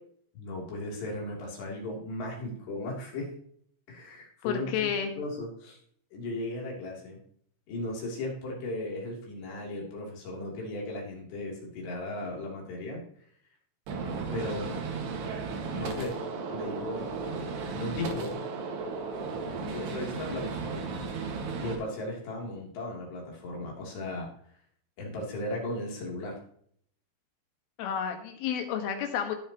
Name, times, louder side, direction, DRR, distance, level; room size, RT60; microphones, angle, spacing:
voice 1, 0.3-3.3 3.9-4.7 5.2-5.8 6.1-7.2 7.7-13.0 14.3-14.8 15.7-16.2 16.5-17.0 17.7-18.4 19.6-21.0 21.6-24.3 25.0-26.4, left 1 dB, 60° left, -2 dB, 5.2 m, -36 dB
voice 2, 4.4-5.1 27.8-29.4, left 8 dB, 75° left, 5 dB, 4.0 m, -30 dB
Gunshot gunfire, 13.9-21.8, right 4 dB, 60° right, 3.5 m, -35 dB
19.5 x 7.4 x 3.0 m, 0.63 s
omnidirectional pair, 5.8 m